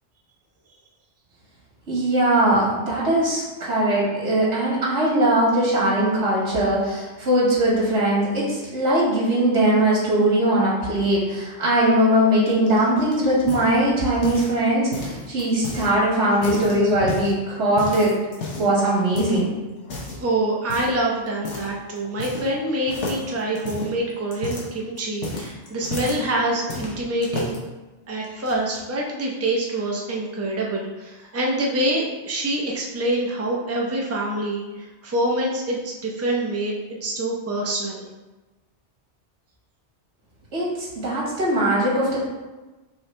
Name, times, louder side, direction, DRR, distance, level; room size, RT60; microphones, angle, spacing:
voice 1, 1.9-18.1 18.6-19.5 40.5-42.2, right 1 dB, 85° right, -6 dB, 1.7 m, -20 dB
sound 1, 12.7-14.6 14.9-15.9 16.3-17.3 17.8-18.8 19.1-19.4 19.8-20.2 20.7-21.0 21.4-21.7 22.0-22.6 22.9-26.2 26.7-27.6 28.2-28.8, left 2 dB, 85° left, 1.2 m, -32 dB
voice 2, 20.2-27.6 28.1-36.7 37.0-38.0, right 1 dB, 20° right, -2 dB, 0.5 m, -26 dB
4.8 x 3.0 x 3.2 m, 1.1 s
omnidirectional pair, 1.2 m